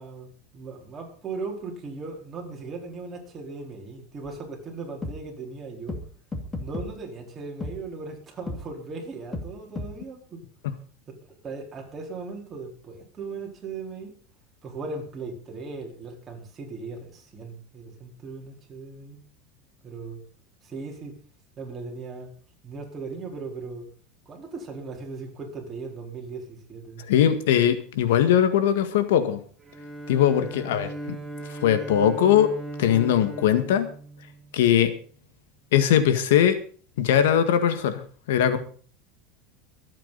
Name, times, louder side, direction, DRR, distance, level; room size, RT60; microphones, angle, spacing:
voice 1, 0.0-6.0 6.6-10.4 11.1-14.1 14.6-19.2 19.8-20.2 20.6-21.2 21.6-22.3 22.6-23.9 24.3-27.0, right 4 dB, 20° right, 0 dB, 4.2 m, -38 dB
sound 1, 4.2-4.3 5.0-5.2 5.9-6.0 6.3-6.9 7.6-7.7 8.5-8.6 9.3-9.5 9.8-9.9, left 2 dB, 15° left, 2.2 m, -32 dB
voice 2, 27.1-29.4 30.1-31.2 31.5-32.5 32.8-33.9 34.5-34.9 35.7-36.6 37.0-38.0 38.3-38.6, left 10 dB, 85° left, 10 dB, 1.8 m, -20 dB
Bowed string instrument, 29.6-34.8, right 2 dB, 5° right, 3.5 m, -38 dB
24.0 x 8.9 x 4.1 m, 0.42 s
supercardioid pair, 145°, 0 cm